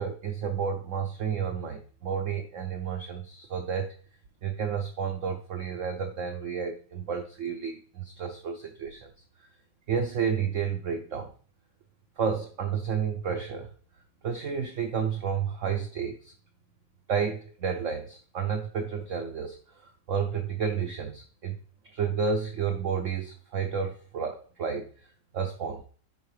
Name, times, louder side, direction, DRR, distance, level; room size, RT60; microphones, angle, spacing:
voice 1, 0.0-3.9 4.4-9.1 9.4-9.5 9.9-11.3 12.2-13.7 14.2-16.3 17.1-21.6 21.9-24.9 25.3-25.8, right 6 dB, 70° right, 5 dB, 0.7 m, -31 dB
10.5 x 4.4 x 3.2 m, 0.43 s
omnidirectional pair, 2.1 m